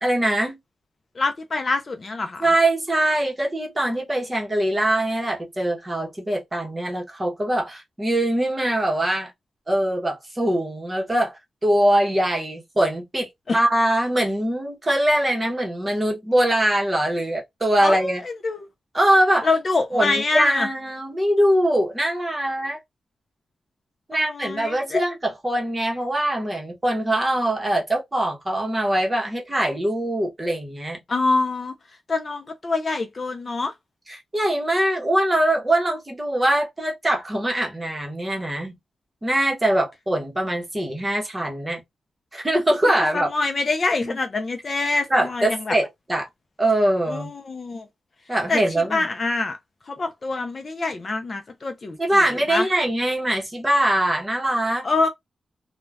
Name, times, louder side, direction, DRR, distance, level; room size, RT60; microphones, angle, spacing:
voice 1, 0.0-0.6 2.4-9.3 9.7-11.3 11.6-18.2 18.9-19.5 19.9-22.8 24.1-31.0 34.1-38.7 39.2-41.8 42.3-43.3 44.0-44.2 45.1-46.3 46.6-47.3 48.3-49.1 52.0-54.9, right 1 dB, 15° right, 0.9 m, -22 dB
voice 2, 1.2-2.5 13.5-13.6 17.8-18.7 19.4-20.7 24.1-25.0 31.1-31.7 32.1-33.7 43.0-45.7 47.1-47.9 48.5-49.6 49.9-52.7 54.8-55.1, left 3 dB, 35° left, 0.4 m, -25 dB
2.4 x 2.2 x 3.2 m
wide cardioid pair, 150°, 0 cm